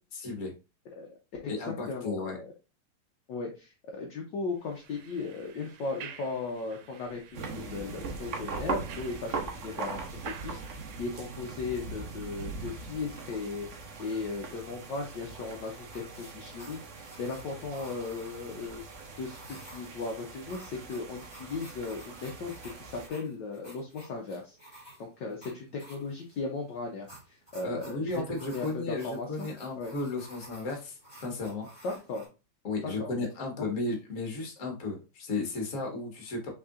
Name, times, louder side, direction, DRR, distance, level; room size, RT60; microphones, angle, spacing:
voice 1, 0.2-0.5 1.5-2.4 27.6-31.7 32.6-36.5, left 3 dB, 40° left, 2 dB, 1.5 m, -34 dB
voice 2, 1.9-2.5 3.3-16.0 16.3-18.8 19.2-28.1 28.4-29.5 29.8-29.9 31.8-32.2 32.8-33.1 33.6-33.7, left 3 dB, 65° left, 0 dB, 1.3 m, -37 dB
sound 1, 4.6-11.1, right 9 dB, 85° right, 1.6 m, -50 dB
sound 2, 7.3-23.1, right 4 dB, 60° right, 0.7 m, -41 dB
sound 3, 15.9-32.3, right 1 dB, 5° left, 2.4 m, -53 dB
5.8 x 3.7 x 2.5 m, 0.30 s
omnidirectional pair, 2.4 m